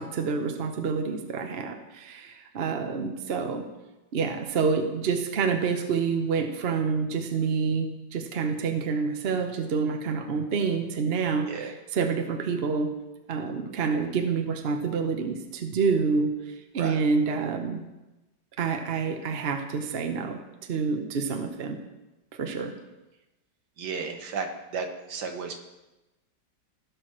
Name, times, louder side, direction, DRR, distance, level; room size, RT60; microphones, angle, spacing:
voice 1, 0.0-3.7 4.1-12.9 13.3-17.8 18.6-20.4 20.7-21.8 22.4-22.7, right 5 dB, 45° right, 5 dB, 0.8 m, -28 dB
voice 2, 23.8-25.6, right 5 dB, 65° right, 4 dB, 1.5 m, -33 dB
16.5 x 6.2 x 3.1 m, 1.0 s
omnidirectional pair, 2.0 m